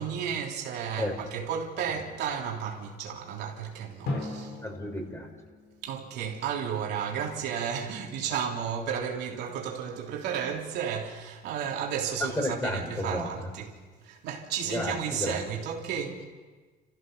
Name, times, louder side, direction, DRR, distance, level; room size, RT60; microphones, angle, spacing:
voice 1, 0.0-4.5 5.8-13.8 14.0-16.3, right 7 dB, 80° right, 3.4 m, -33 dB
Drum, 4.1-6.8, left 2 dB, 75° left, 3.8 m, -38 dB
voice 2, 4.6-5.3 12.2-13.5 14.6-15.4, left 1 dB, 15° left, 5.1 m, -32 dB
29.5 x 15.0 x 6.8 m
cardioid pair, 110°, 17 cm